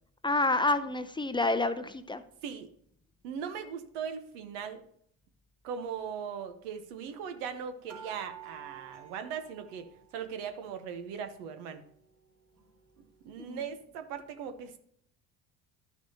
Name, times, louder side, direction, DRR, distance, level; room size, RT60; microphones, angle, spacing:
voice 1, 0.2-2.2 13.4-13.6, left 2 dB, 15° left, 10 dB, 0.5 m, -28 dB
voice 2, 3.2-4.8 5.6-11.8 13.2-14.8, right 7 dB, 85° right, 8 dB, 1.0 m, -39 dB
sound 1, 7.9-10.4 10.7-11.7 12.2-12.3 12.6-12.7, right 8 dB, 65° right, 3.3 m, -51 dB
11.5 x 6.1 x 2.8 m, 0.67 s
supercardioid pair, 85°, 36 cm